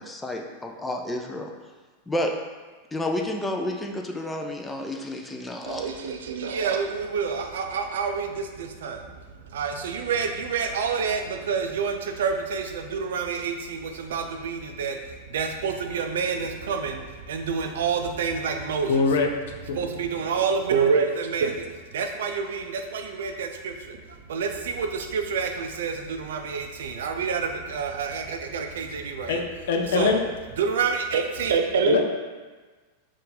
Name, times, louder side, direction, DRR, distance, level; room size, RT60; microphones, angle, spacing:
voice 1, 0.0-1.5 2.1-2.3 2.9-5.8, left 1 dB, 10° left, 2 dB, 0.5 m, -30 dB
voice 2, 5.7-9.1 9.4-18.9 19.7-21.7 21.9-29.4 29.9-30.1 30.6-32.0, right 5 dB, 75° right, 5 dB, 0.4 m, -28 dB
voice 3, 18.9-19.3 19.7-19.8 29.3-30.3 31.9-32.0, left 5 dB, 70° left, 4 dB, 0.6 m, -23 dB
4.1 x 2.5 x 3.9 m, 1.3 s
hypercardioid pair, 105°, 0 cm